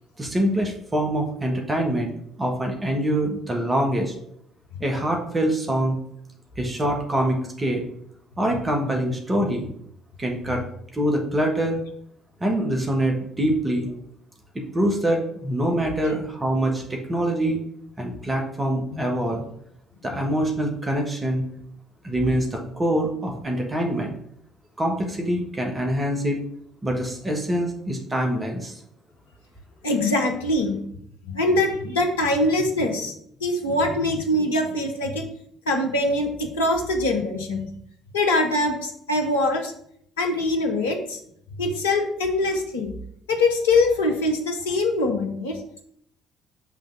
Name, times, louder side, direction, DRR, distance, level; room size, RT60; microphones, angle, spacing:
voice 1, 0.2-2.1 2.4-4.1 4.8-6.0 6.6-7.8 8.4-9.6 10.2-10.6 10.9-11.8 12.4-13.9 14.5-17.6 18.0-19.4 20.0-21.5 22.0-24.1 24.8-26.4 26.8-28.8, right 1 dB, 20° right, 1 dB, 1.3 m, -24 dB
voice 2, 29.8-30.8 31.3-33.1 33.4-35.3 35.7-37.7 38.1-39.7 40.2-41.2 41.6-42.9 43.3-45.6, left 2 dB, 75° left, 2 dB, 0.8 m, -23 dB
6.0 x 3.5 x 5.9 m, 0.69 s
figure-of-eight pair, 50°, 0 cm